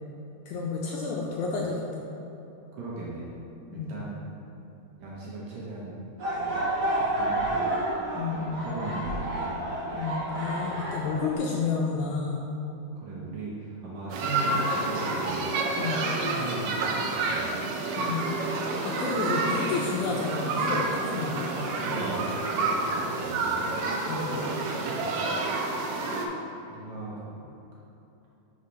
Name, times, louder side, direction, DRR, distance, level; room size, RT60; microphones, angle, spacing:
voice 1, 0.5-2.1 3.7-4.0 8.1-8.7 9.9-12.5 15.7-16.1 18.0-18.3 18.8-21.5 24.1-24.4, left 4 dB, 80° left, -2 dB, 1.8 m, -30 dB
voice 2, 2.8-3.3 3.7-4.1 5.0-6.0 6.4-7.7 8.6-9.6 10.7-11.1 13.0-15.5 16.2-17.8 21.5-23.7 24.0-24.3 25.0-25.3 26.7-27.5, right 2 dB, 70° right, -6 dB, 1.8 m, -38 dB
sound 1, 6.2-11.3, right 1 dB, 40° right, 1.6 m, -30 dB
sound 2, 14.1-26.3, right 3 dB, 90° right, 1.5 m, -29 dB
5.6 x 4.3 x 5.2 m, 3.0 s
omnidirectional pair, 3.9 m